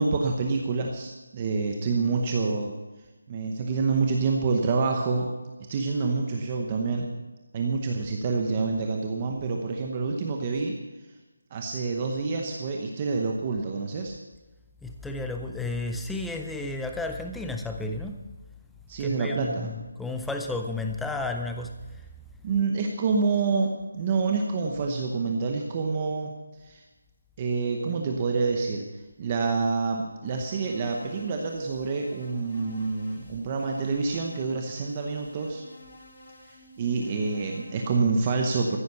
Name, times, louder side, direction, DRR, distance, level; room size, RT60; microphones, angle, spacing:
voice 1, 0.0-2.7 3.3-5.3 5.7-7.1 7.5-10.7 11.5-14.1 18.9-19.7 22.4-26.3 26.6-26.8 27.4-28.9 29.2-35.7 36.5-38.8, right 4 dB, 15° right, 2 dB, 0.9 m, -27 dB
voice 2, 14.8-18.2 19.0-21.7, left 2 dB, ahead, 4 dB, 0.5 m, -32 dB
sound 1, 30.3-37.9, equal, 30° left, 4.2 m, -51 dB
14.5 x 10.0 x 7.0 m, 1.2 s
figure-of-eight pair, 180°, 0 cm